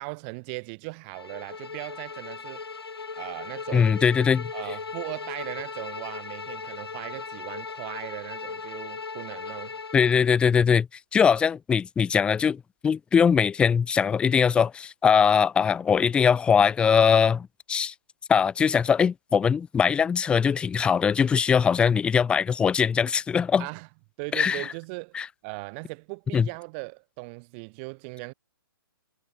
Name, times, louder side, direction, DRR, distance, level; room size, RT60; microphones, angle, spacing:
voice 1, 0.0-2.6 3.1-3.9 4.5-9.8 23.6-23.9 24.2-25.2 25.4-28.3, right 34 dB, 30° right, 4.6 m, -38 dB
Bowed string instrument, 1.1-10.2, left 5 dB, 85° left, 6.2 m, -38 dB
voice 2, 3.7-4.5 9.9-10.9 11.1-17.9 18.3-23.7 24.3-24.7 25.1-25.3 26.3-26.5, left 6 dB, 10° left, 0.6 m, -21 dB
hypercardioid pair, 145°, 12 cm